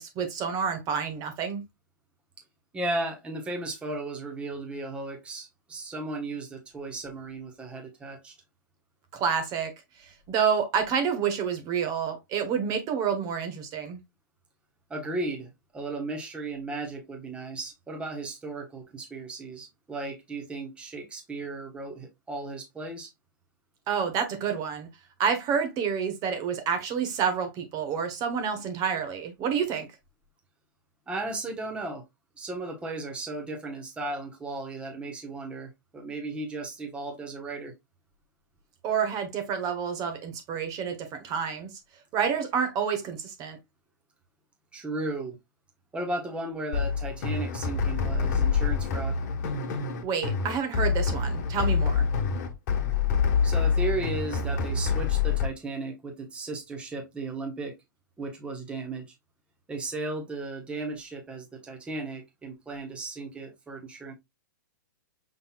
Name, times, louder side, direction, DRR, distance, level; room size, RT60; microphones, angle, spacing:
voice 1, 0.0-1.6 9.1-9.7 10.0-14.0 23.9-24.9 25.2-29.9 38.8-41.7 42.1-43.6 50.0-52.1, right 7 dB, 30° right, 1.1 m, -28 dB
voice 2, 2.7-8.3 14.9-23.1 31.1-32.0 32.4-37.7 44.7-45.4 45.9-49.2 53.4-57.8 58.2-59.0 59.7-64.1, right 2 dB, 10° right, 1.1 m, -35 dB
sound 1, 46.7-55.5, left 6 dB, 50° left, 1.3 m, -26 dB
5.6 x 3.9 x 2.4 m
hypercardioid pair, 135°, 11 cm